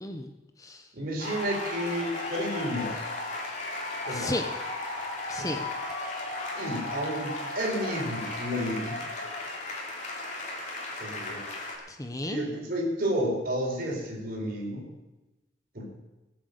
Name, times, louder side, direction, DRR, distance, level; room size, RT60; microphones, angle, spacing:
voice 1, 0.0-0.3 0.6-0.9 4.1-4.5 5.3-5.6 11.9-12.4, left 1 dB, 20° left, 6 dB, 0.8 m, -33 dB
voice 2, 0.9-3.0 4.0-4.3 5.4-5.6 6.6-9.0 11.0-11.4 12.3-14.9 15.7-15.9, equal, 50° right, -1 dB, 4.1 m, -31 dB
sound 1, 1.2-11.8, left 2 dB, 40° left, 2.9 m, -35 dB
18.5 x 7.8 x 6.7 m, 1.0 s
head